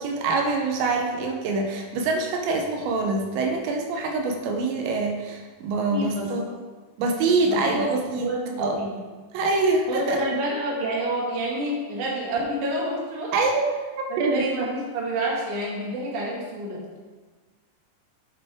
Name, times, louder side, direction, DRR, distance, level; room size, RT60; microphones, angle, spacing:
voice 1, 0.0-6.5 7.0-8.3 8.6-8.8 9.3-10.2 13.3-13.7 14.2-14.4, right 3 dB, 90° right, 3 dB, 3.2 m, -25 dB
voice 2, 5.9-6.3 7.4-7.9 8.2-8.9 9.9-13.3 14.1-16.8, right 1 dB, 55° right, -4 dB, 2.9 m, -28 dB
9.8 x 6.9 x 3.6 m, 1.3 s
omnidirectional pair, 5.0 m